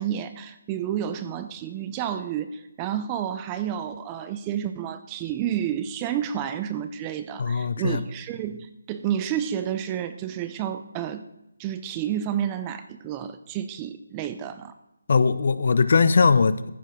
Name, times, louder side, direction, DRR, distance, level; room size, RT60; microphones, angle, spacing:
voice 1, 0.0-11.3 11.6-14.7, right 10 dB, 15° right, 11 dB, 0.5 m, -30 dB
voice 2, 7.4-8.0 15.1-16.7, left 5 dB, 50° left, 14 dB, 0.7 m, -20 dB
14.5 x 6.9 x 6.3 m, 0.90 s
hypercardioid pair, 170°, 0 cm